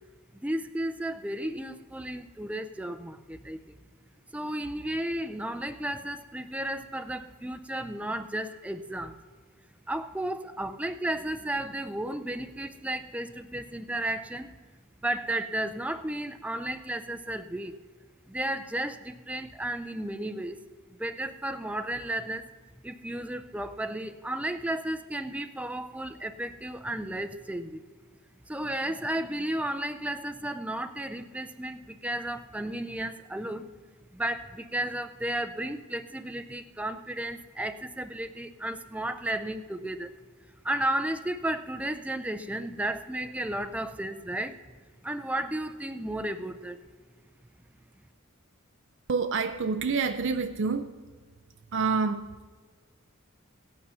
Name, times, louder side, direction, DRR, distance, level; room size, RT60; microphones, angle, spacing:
voice 1, 0.3-3.7 4.3-9.2 9.9-14.5 15.0-17.7 18.3-20.6 20.9-22.5 22.8-27.8 28.5-33.7 34.1-40.1 40.6-44.6 45.0-46.8, right 1 dB, 5° right, 9 dB, 0.4 m, -33 dB
voice 2, 49.1-50.9 51.7-52.5, right 5 dB, 60° right, 7 dB, 0.5 m, -28 dB
16.5 x 8.7 x 5.6 m, 1.4 s
head